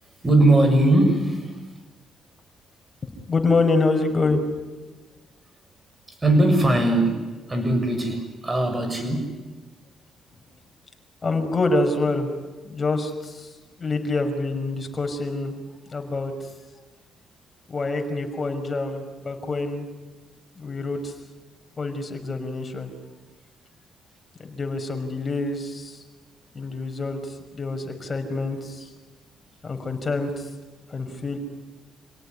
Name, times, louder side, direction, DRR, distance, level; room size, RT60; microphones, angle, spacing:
voice 1, 0.2-1.6 6.1-7.2 7.5-9.4, right 1 dB, 20° right, 7 dB, 7.1 m, -20 dB
voice 2, 3.3-4.4 11.2-12.3 12.6-13.5 13.8-15.5 15.9-16.3 17.7-19.9 20.6-21.1 21.8-22.9 24.4-26.0 26.5-28.9 29.6-30.5 30.9-31.4, left 3 dB, 30° left, 5 dB, 5.6 m, -26 dB
28.5 x 18.0 x 9.9 m, 1.3 s
cardioid pair, 90°, 0 cm